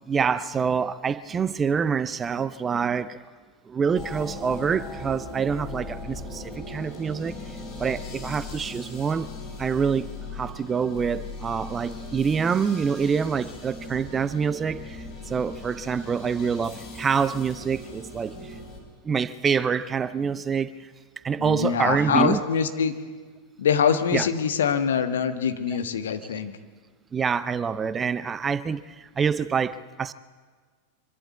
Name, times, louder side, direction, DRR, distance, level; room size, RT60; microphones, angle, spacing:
voice 1, 0.1-3.2 3.7-7.3 7.8-9.3 9.6-10.1 10.3-18.6 19.0-20.9 21.2-22.4 24.1-24.3 27.1-30.1, right 6 dB, 20° right, 0.6 m, -26 dB
sound 1, 4.0-18.8, left 2 dB, 30° left, 5.9 m, -39 dB
voice 2, 21.4-22.9 23.6-26.5, left 7 dB, 65° left, 1.5 m, -24 dB
25.0 x 12.5 x 8.6 m
figure-of-eight pair, 90°, 0 cm